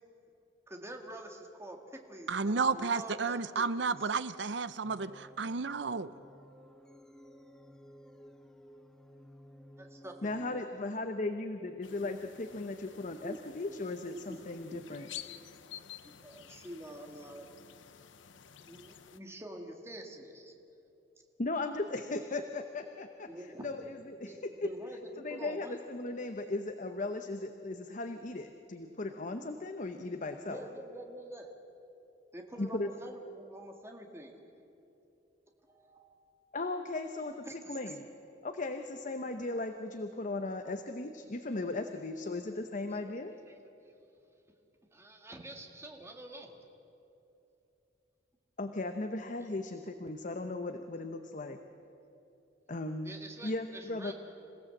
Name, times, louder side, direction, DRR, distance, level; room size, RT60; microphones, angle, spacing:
voice 1, 0.7-3.9 9.8-10.6 13.2-13.4 14.1-14.4 14.7-14.8 15.1-15.2 16.0-17.5 18.7-20.5 23.3-23.7 24.2-24.4 24.6-25.8 30.5-31.5 32.3-34.4 35.7-36.2 37.5-37.8 44.9-46.6 53.0-54.1, right 1 dB, 15° right, 3 dB, 1.9 m, -46 dB
voice 2, 2.3-6.1, right 4 dB, 70° right, 15 dB, 0.7 m, -32 dB
sound 1, 4.8-10.5, equal, 5° left, 0.7 m, -56 dB
voice 3, 10.2-15.1 21.4-24.7 25.1-30.6 32.6-32.9 36.5-38.1 38.4-43.3 48.6-51.6 52.7-53.1 53.4-54.1, left 2 dB, 45° left, 7 dB, 0.8 m, -37 dB
sound 2, 11.8-19.2, left 10 dB, 90° left, 0.8 m, -51 dB
27.5 x 16.5 x 7.8 m, 2.9 s
head